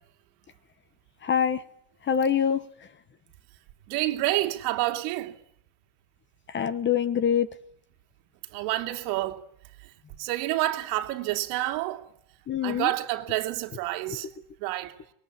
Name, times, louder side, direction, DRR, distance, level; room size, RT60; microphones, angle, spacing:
voice 1, 1.2-1.6 2.1-2.7 6.5-7.5 12.5-12.9 14.1-14.2, left 8 dB, 25° left, 1.1 m, -25 dB
voice 2, 3.9-5.3 8.5-9.4 10.2-12.0 12.6-14.3 14.6-14.9, right 16 dB, 70° right, 2.9 m, -28 dB
25.0 x 21.5 x 9.8 m
cardioid pair, 150°, 46 cm